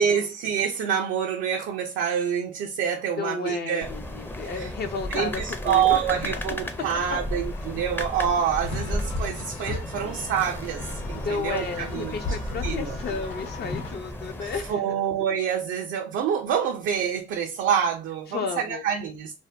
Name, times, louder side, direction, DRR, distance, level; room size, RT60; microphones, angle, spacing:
voice 1, 0.0-3.9 4.5-4.7 5.1-12.1 12.6-13.0 14.4-19.3, right 8 dB, 85° right, 0.5 m, -27 dB
voice 2, 3.2-6.4 11.1-14.8 18.3-18.8, left 5 dB, 55° left, 0.6 m, -33 dB
sound 1, 3.8-14.7, left 1 dB, 10° left, 0.5 m, -34 dB
sound 2, 7.0-13.9, left 3 dB, 85° left, 0.9 m, -37 dB
2.6 x 2.2 x 3.3 m
cardioid pair, 90°, 20 cm